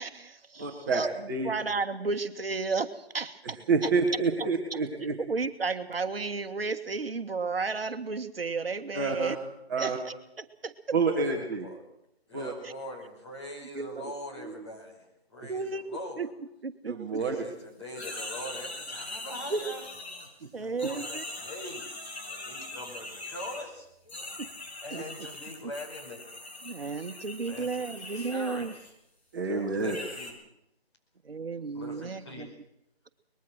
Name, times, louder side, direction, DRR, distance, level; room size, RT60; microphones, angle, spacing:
voice 1, 0.0-3.9 4.7-4.8 5.2-9.4 9.8-10.7 12.6-12.7 13.7-14.1 14.4-14.7 15.5-16.3 16.6-17.2 19.5-19.6 20.5-21.2 24.4-24.5 24.9-25.0 26.6-28.7 31.2-32.5, right 4 dB, 65° right, 8 dB, 1.5 m, -33 dB
voice 2, 0.6-1.0 1.3-1.5 3.7-5.1 8.9-9.3 9.7-10.0 10.9-11.7 12.3-12.5 16.9-17.3 29.3-30.0, right 4 dB, 20° right, -2 dB, 2.1 m, -28 dB
voice 3, 11.2-11.8 12.3-16.3 17.1-19.8 20.6-21.9 22.3-24.3 24.7-26.2 27.4-28.9 29.4-30.4 31.7-32.6, left 1 dB, 25° left, 0 dB, 5.4 m, -43 dB
sound 1, 17.9-20.5 20.8-23.7 24.1-28.9 29.8-30.3, left 2 dB, 85° left, 7.1 m, -41 dB
23.0 x 21.0 x 6.3 m, 0.80 s
figure-of-eight pair, 170°, 32 cm